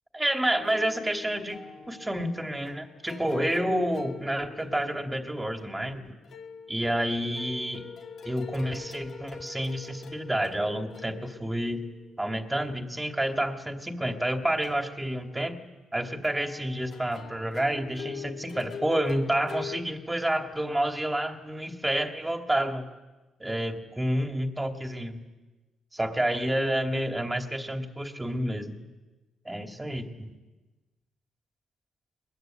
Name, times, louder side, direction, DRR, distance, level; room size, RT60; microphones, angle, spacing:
voice 1, 0.1-1.6 1.9-6.1 6.7-7.8 8.2-11.9 12.2-15.6 15.9-22.9 23.4-25.2 25.9-28.7 29.4-30.3, right 1 dB, 10° right, 4 dB, 2.6 m, -29 dB
sound 1, 0.6-12.5 14.6-15.5 16.2-19.8, left 7 dB, 60° left, 2.5 m, -43 dB
22.0 x 21.5 x 9.2 m, 1.2 s
cardioid pair, 90°, 0 cm